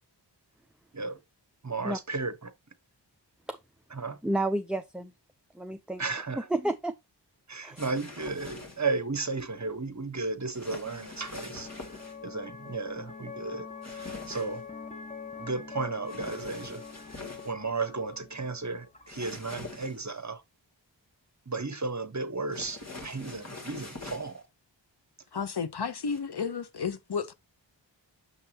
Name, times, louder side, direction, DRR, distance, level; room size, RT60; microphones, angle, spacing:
voice 1, 1.6-2.5 3.9-4.2 6.0-6.5 7.5-11.7 12.2-13.7 13.9-14.6 15.4-16.8 17.4-20.4 21.5-24.4, right 3 dB, 40° right, 1.1 m, -34 dB
voice 2, 4.2-5.1 5.6-6.0 6.5-6.9 7.6-7.8, right 1 dB, ahead, 0.6 m, -30 dB
sound 1, 7.8-9.0 10.5-12.2 13.8-14.6 16.1-17.5 19.1-20.2 22.5-24.4 26.0-26.2, left 3 dB, 35° left, 2.4 m, -44 dB
sound 2, 9.7-19.7, left 5 dB, 15° left, 1.4 m, -45 dB
voice 3, 25.3-27.3, left 6 dB, 60° left, 0.8 m, -32 dB
7.0 x 5.6 x 2.8 m
wide cardioid pair, 40°, 45 cm